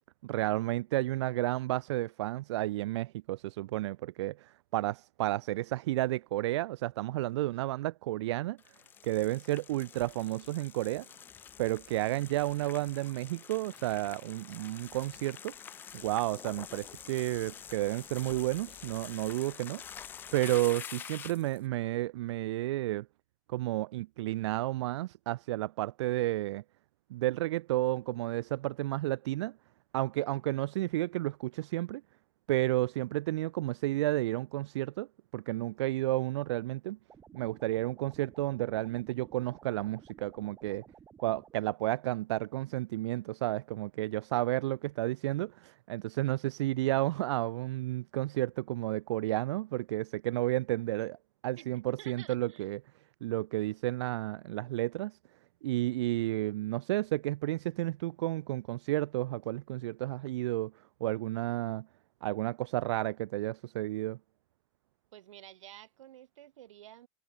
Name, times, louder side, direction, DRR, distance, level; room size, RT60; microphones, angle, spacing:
voice 1, 0.2-8.6 9.0-11.1 11.6-15.5 15.9-19.8 20.3-23.1 23.5-26.6 27.1-29.6 29.9-32.0 32.5-35.1 35.3-37.0 37.3-40.8 41.2-51.2 51.4-52.8 53.2-55.2 55.6-60.7 61.0-61.9 62.2-64.2, right 16 dB, 60° right, 0.7 m, -32 dB
sound 1, 8.6-21.6, left 8 dB, 10° left, 0.5 m, -47 dB
sound 2, 37.1-41.6, right 7 dB, 15° right, 4.1 m, -56 dB
voice 2, 51.6-52.7 65.1-67.1, right 13 dB, 75° right, 6.7 m, -51 dB
supercardioid pair, 170°, 16 cm